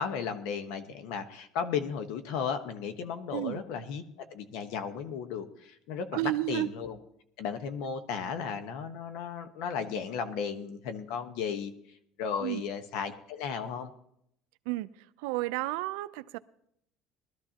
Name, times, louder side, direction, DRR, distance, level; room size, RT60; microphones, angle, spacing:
voice 1, 0.0-4.0 4.3-7.0 7.4-11.7 12.2-13.9, left 6 dB, 75° left, 9 dB, 1.2 m, -35 dB
voice 2, 6.1-6.7 12.4-12.6 14.7-14.9 15.2-16.4, right 18 dB, 90° right, 15 dB, 0.5 m, -31 dB
20.5 x 13.0 x 2.9 m, 0.74 s
cardioid pair, 145°, 0 cm